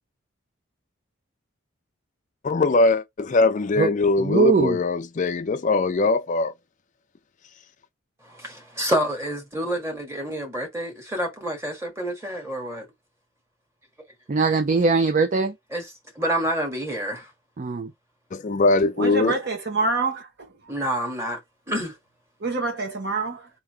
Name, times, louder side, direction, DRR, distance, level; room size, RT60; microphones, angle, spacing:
voice 1, 2.4-6.5 18.3-19.4, left 3 dB, 35° left, 0.4 m, -21 dB
voice 2, 4.2-4.8 14.3-15.5 17.6-17.9, right 4 dB, 40° right, 0.4 m, -21 dB
voice 3, 8.2-12.9 15.7-15.8 16.1-17.3 20.7-21.4 21.7-21.9, right 1 dB, 15° right, 1.5 m, -28 dB
voice 4, 19.0-20.3 22.4-23.5, right 3 dB, 55° right, 1.3 m, -26 dB
3.7 x 2.8 x 4.6 m
head